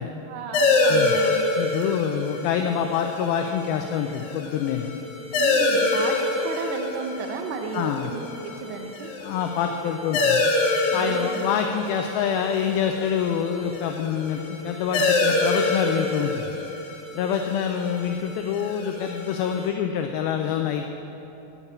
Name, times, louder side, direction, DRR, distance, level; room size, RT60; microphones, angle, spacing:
voice 1, 0.3-1.5 5.3-9.1 10.9-11.4, right 4 dB, 80° right, 5 dB, 2.8 m, -34 dB
sound 1, 0.5-19.7, left 2 dB, 65° left, 2.0 m, -26 dB
voice 2, 1.6-4.9 7.7-8.1 9.2-10.4 10.9-16.5 17.1-20.9, left 8 dB, 85° left, 5 dB, 2.1 m, -26 dB
8.7 x 6.8 x 8.3 m, 3.0 s
omnidirectional pair, 4.8 m